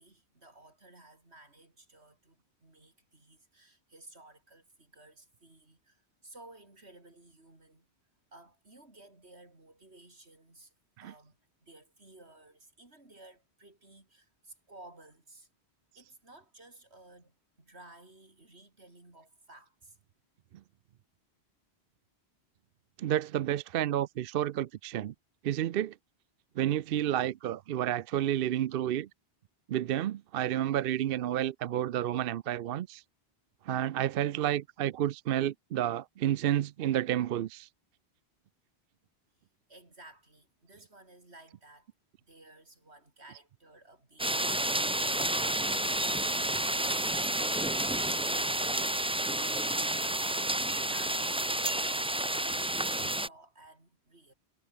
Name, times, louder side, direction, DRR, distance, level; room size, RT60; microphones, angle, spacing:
voice 1, 0.0-7.9 8.3-10.7 11.0-15.5 16.0-20.0 39.7-41.9 42.2-44.8 45.4-47.0 47.5-49.6 49.9-54.3, right 2 dB, 85° right, 5.2 m, -55 dB
voice 2, 23.0-25.1 25.4-25.9 26.6-29.1 29.7-33.0 33.7-37.7, right 12 dB, 65° right, 0.7 m, -30 dB
sound 1, 44.2-53.3, right 1 dB, 5° right, 0.5 m, -30 dB
omnidirectional pair, 1.1 m